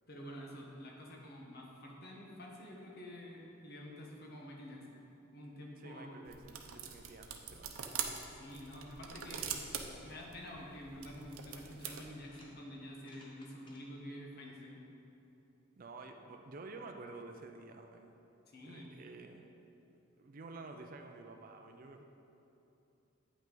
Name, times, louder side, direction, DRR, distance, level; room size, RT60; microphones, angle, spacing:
voice 1, 0.1-4.9 5.3-6.2 8.3-9.5 10.0-14.8 18.5-18.9, equal, 50° left, -1 dB, 1.0 m, -49 dB
voice 2, 5.7-7.8 15.8-18.2 18.6-19.5 19.9-22.0, right 3 dB, 40° right, 5 dB, 0.4 m, -51 dB
sound 1, 6.3-12.0, right 7 dB, 80° right, 0.6 m, -44 dB
sound 2, 10.8-10.9 11.6-12.5 12.9-13.8, left 2 dB, 25° left, 0.8 m, -61 dB
8.7 x 5.7 x 3.8 m, 2.9 s
head